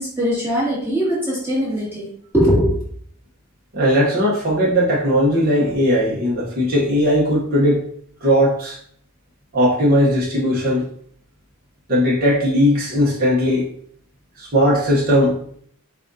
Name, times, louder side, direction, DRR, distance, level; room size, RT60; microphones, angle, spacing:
voice 1, 0.0-2.1 2.3-2.8, equal, 10° right, -9 dB, 2.0 m, -20 dB
voice 2, 3.7-7.9 8.2-8.8 9.5-10.9 11.9-13.7 14.4-15.4, equal, 40° right, -5 dB, 0.9 m, -18 dB
7.5 x 2.5 x 2.6 m, 0.62 s
head